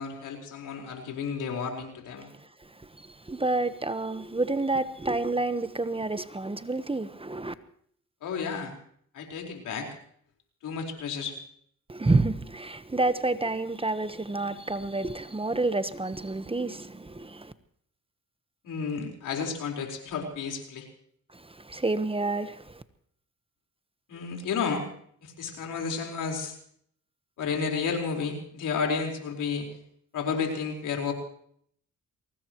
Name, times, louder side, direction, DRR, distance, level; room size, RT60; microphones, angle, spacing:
voice 1, 0.0-2.3 8.2-8.7 9.1-9.9 10.6-11.4 18.6-20.9 24.1-24.9 25.2-26.5 27.4-29.7 30.1-31.1, left 5 dB, 85° left, 4.6 m, -32 dB
voice 2, 3.0-7.5 11.9-17.5 21.3-22.8, right 2 dB, 20° right, 1.2 m, -29 dB
23.5 x 19.0 x 3.1 m
cardioid pair, 70°, 31 cm